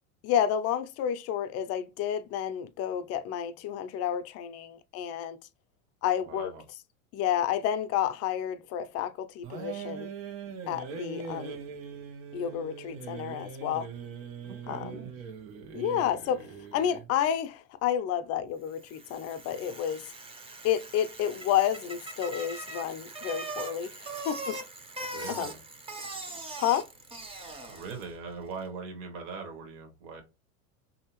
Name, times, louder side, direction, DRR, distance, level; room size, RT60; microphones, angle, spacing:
voice 1, 0.2-5.4 6.0-6.5 7.1-10.1 10.7-11.6 12.3-13.9 14.7-15.0 15.7-20.0 20.6-24.6 25.3-25.5 26.6-26.9, left 10 dB, 40° left, 0.4 m, -30 dB
voice 2, 6.2-6.6 14.4-15.1 25.1-25.6 27.7-30.2, right 4 dB, 50° right, 1.1 m, -41 dB
sound 1, 9.4-17.1, right 6 dB, 80° right, 1.1 m, -41 dB
Bicycle, 18.7-28.2, right 2 dB, 15° right, 0.6 m, -41 dB
3.3 x 2.7 x 2.9 m
supercardioid pair, 120°, 40 cm